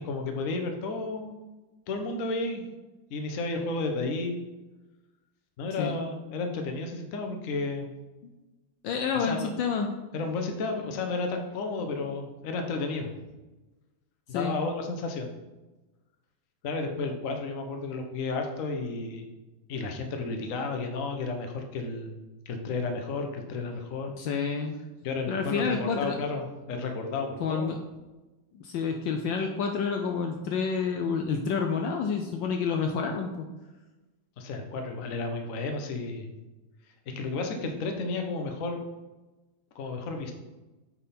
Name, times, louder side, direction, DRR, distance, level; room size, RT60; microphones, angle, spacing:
voice 1, 0.0-1.3 1.9-2.6 3.1-4.4 5.6-7.9 9.1-9.5 10.1-13.1 14.3-15.3 16.6-19.2 19.7-22.2 22.5-24.1 25.0-27.7 34.4-36.3 37.1-38.8 39.7-40.3, left 3 dB, 55° left, 4 dB, 1.0 m, -32 dB
voice 2, 8.8-9.9 14.3-14.6 24.2-24.8 25.3-26.2 27.4-27.8 28.5-33.5, left 5 dB, 75° left, 4 dB, 1.2 m, -29 dB
9.0 x 3.6 x 4.3 m, 1.1 s
omnidirectional pair, 2.3 m